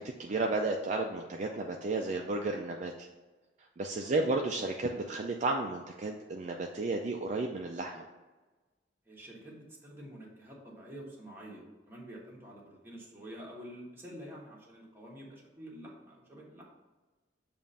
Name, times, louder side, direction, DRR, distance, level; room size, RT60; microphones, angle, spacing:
voice 1, 0.0-3.1 3.8-8.1, right 2 dB, 40° right, 2 dB, 0.4 m, -33 dB
voice 2, 4.0-4.4 9.1-16.7, equal, 15° right, -4 dB, 1.3 m, -48 dB
7.1 x 2.5 x 5.4 m, 1.2 s
head